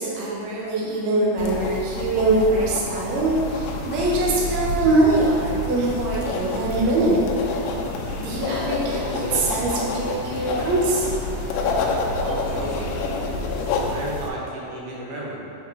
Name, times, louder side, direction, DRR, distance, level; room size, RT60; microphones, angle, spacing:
voice 1, 0.0-7.4 8.2-11.7, right 2 dB, 85° right, -4 dB, 1.5 m, -23 dB
sound 1, 1.4-14.3, left 3 dB, 80° left, 2.2 m, -29 dB
sound 2, 3.3-13.9, left 1 dB, 50° left, 1.8 m, -36 dB
voice 2, 12.2-13.0 13.6-15.4, right 1 dB, 70° right, -4 dB, 2.1 m, -33 dB
6.1 x 5.2 x 3.4 m, 2.9 s
omnidirectional pair, 4.3 m